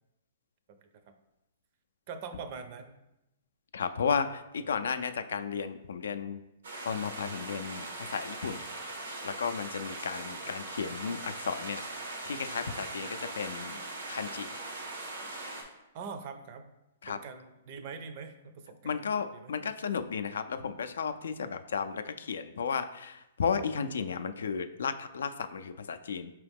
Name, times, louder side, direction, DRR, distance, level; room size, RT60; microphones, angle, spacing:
voice 1, 0.7-1.0 2.1-3.0 4.6-4.9 10.4-10.5 10.9-11.0 15.9-16.7 17.1-19.5, right 5 dB, 45° right, 8 dB, 0.5 m, -44 dB
voice 2, 3.7-6.4 6.9-8.6 9.2-11.8 12.2-13.8 14.1-14.5 17.0-17.2 18.8-26.3, left 6 dB, 80° left, 10 dB, 0.3 m, -34 dB
sound 1, 6.6-15.6, right 2 dB, 90° right, 1.1 m, -40 dB
4.8 x 2.9 x 3.5 m, 0.92 s
hypercardioid pair, 145°, 0 cm